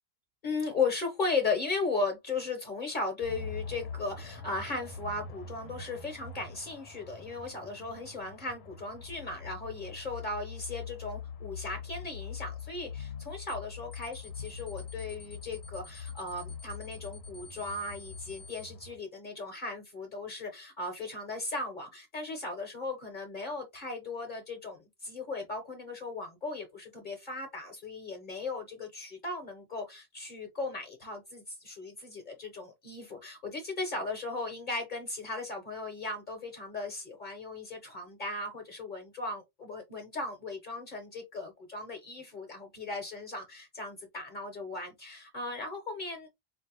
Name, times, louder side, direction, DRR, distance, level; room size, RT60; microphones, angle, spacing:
voice 1, 0.4-46.3, left 3 dB, 50° left, 1.1 m, -37 dB
sound 1, 3.2-19.0, left 6 dB, 85° left, 1.0 m, -43 dB
sound 2, 13.5-13.7 13.9-18.7, left 2 dB, 25° left, 0.7 m, -52 dB
4.3 x 2.6 x 2.9 m
omnidirectional pair, 1.1 m